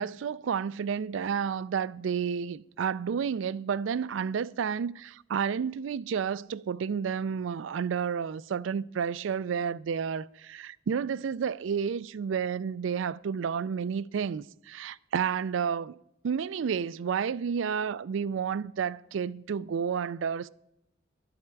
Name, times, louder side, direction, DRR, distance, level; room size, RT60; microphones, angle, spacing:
voice 1, 0.0-16.0 16.2-20.5, right 7 dB, 80° right, 0.4 m, -31 dB
11.5 x 11.0 x 4.6 m
head